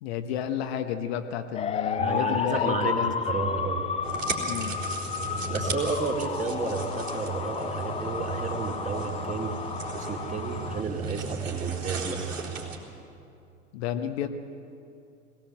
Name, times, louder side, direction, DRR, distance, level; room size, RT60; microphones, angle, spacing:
voice 1, 0.0-3.1 3.4-3.6 4.4-4.7 13.7-14.3, left 9 dB, 55° left, 7 dB, 1.3 m, -31 dB
sound 1, 1.5-10.8, left 6 dB, 15° left, 0.7 m, -32 dB
voice 2, 2.0-3.8 5.5-9.5 9.9-12.3, right 4 dB, 20° right, 1 dB, 2.5 m, -32 dB
sound 2, 4.0-12.8, right 3 dB, 80° right, 3.9 m, -35 dB
21.0 x 18.5 x 7.8 m, 2.6 s
figure-of-eight pair, 85°, 38 cm